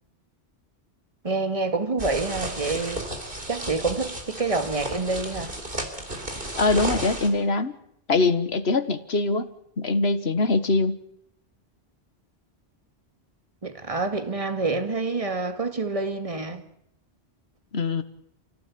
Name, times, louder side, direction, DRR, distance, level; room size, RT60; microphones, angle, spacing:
voice 1, 1.2-3.1 3.5-5.5 13.6-16.6, right 3 dB, 30° right, 2.1 m, -27 dB
sound 1, 2.0-7.3, right 1 dB, 55° right, 4.2 m, -33 dB
voice 2, 6.6-7.7 8.1-11.0 17.7-18.0, left 3 dB, 75° left, 1.7 m, -23 dB
28.5 x 16.5 x 8.6 m
omnidirectional pair, 1.1 m